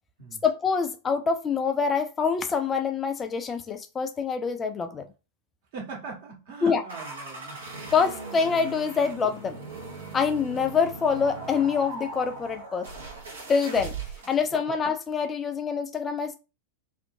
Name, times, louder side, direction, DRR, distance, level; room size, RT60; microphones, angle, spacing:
voice 1, 0.4-5.0 6.6-6.8 7.9-9.6 10.1-12.9 13.5-13.9 14.3-16.3, left 5 dB, 20° left, 0.3 m, -25 dB
voice 2, 5.7-7.6, right 4 dB, 50° right, 1.3 m, -40 dB
sound 1, 6.9-14.5, right 3 dB, 70° right, 1.0 m, -39 dB
2.7 x 2.5 x 2.6 m
figure-of-eight pair, 90°, 0 cm